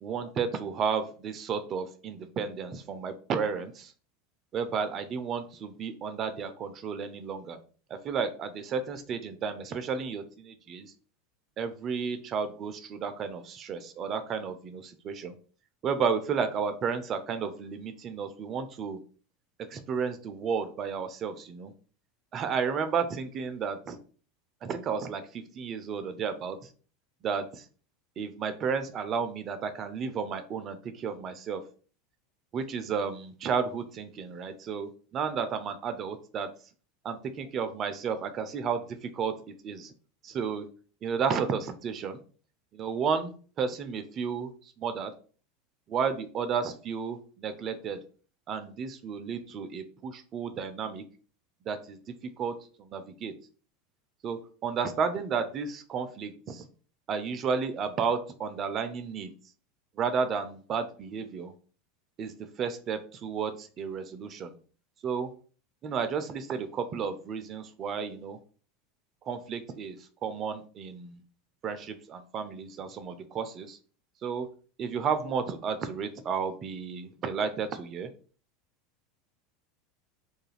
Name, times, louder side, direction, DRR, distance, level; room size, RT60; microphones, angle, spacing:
voice 1, 0.0-3.9 4.5-7.6 8.0-10.9 11.6-15.3 15.8-19.0 19.7-21.7 22.3-24.0 24.6-26.6 27.2-27.6 28.2-31.6 32.5-36.5 37.0-39.3 39.6-39.8 40.3-40.7 41.0-42.2 42.7-44.5 44.8-45.1 45.9-48.0 48.5-51.0 51.7-52.0 52.4-53.3 54.2-56.7 57.1-59.3 60.0-61.5 62.2-62.3 62.6-64.5 65.0-65.3 65.8-68.4 69.3-70.0 70.2-71.2 71.6-73.8 74.2-74.5 74.8-78.1, right 6 dB, 40° right, 9 dB, 0.3 m, -32 dB
2.4 x 2.3 x 3.1 m, 0.40 s
hypercardioid pair, 85°, 0 cm